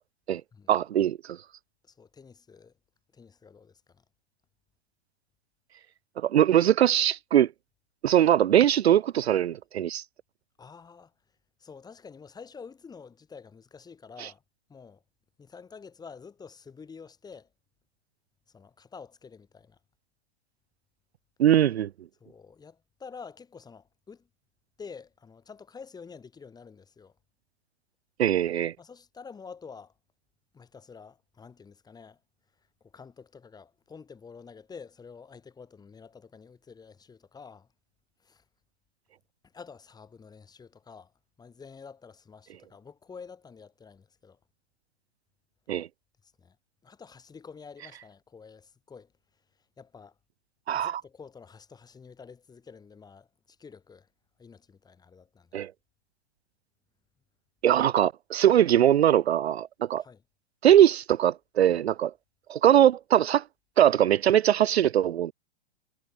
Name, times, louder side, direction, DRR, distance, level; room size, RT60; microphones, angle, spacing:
voice 1, 0.7-1.4 6.2-7.5 8.0-10.0 14.2-14.3 21.4-21.9 28.2-28.7 45.7-45.9 50.7-51.0 55.5-55.7 57.6-60.0 60.6-62.1 62.5-63.4 63.8-65.3, right 11 dB, 75° right, 0.5 m, -21 dB
voice 2, 1.8-2.7 3.1-4.0 10.6-11.1 11.6-14.4 14.7-15.0 15.4-17.5 18.5-19.8 22.2-24.3 24.8-27.1 28.8-29.9 30.5-32.2 32.8-37.7 38.2-38.4 39.4-41.1 41.4-44.4 46.2-46.6 46.8-49.1 49.8-50.1 50.7-54.1 54.4-55.6 60.0-60.2, left 5 dB, 10° left, 6.0 m, -48 dB
figure-of-eight pair, 120°, 32 cm